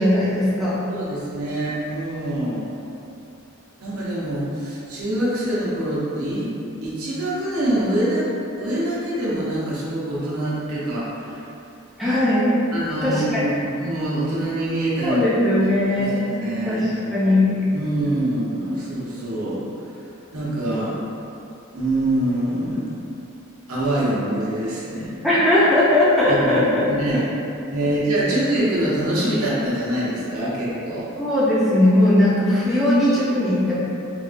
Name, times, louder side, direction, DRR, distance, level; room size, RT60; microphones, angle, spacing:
voice 1, 0.0-0.8 12.0-12.5 13.0-13.4 15.0-16.3 16.6-17.6 25.2-27.2 31.2-33.8, left 1 dB, ahead, -10 dB, 0.4 m, -19 dB
voice 2, 0.9-2.7 3.8-6.5 6.8-8.3 8.6-11.4 12.7-15.2 15.9-16.8 17.7-19.6 20.3-20.9 21.7-22.9 23.7-25.1 26.3-27.2 27.7-31.1, right 1 dB, 85° right, -8 dB, 0.8 m, -25 dB
3.5 x 2.3 x 2.5 m, 2.7 s
head